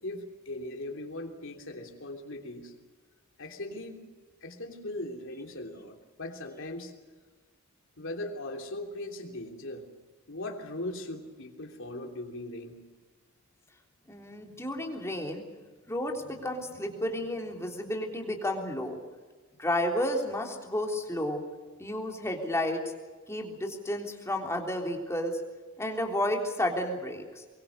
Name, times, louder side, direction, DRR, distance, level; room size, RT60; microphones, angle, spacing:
voice 1, 0.0-2.7 3.4-4.0 4.4-6.9 8.0-9.9 10.3-12.8, left 1 dB, 65° left, 3 dB, 3.2 m, -39 dB
voice 2, 14.1-15.4 15.9-19.0 19.6-21.4 21.8-22.8 23.3-25.4 25.8-27.4, left 1 dB, 15° left, 1 dB, 3.5 m, -31 dB
23.5 x 23.5 x 6.8 m, 1.3 s
head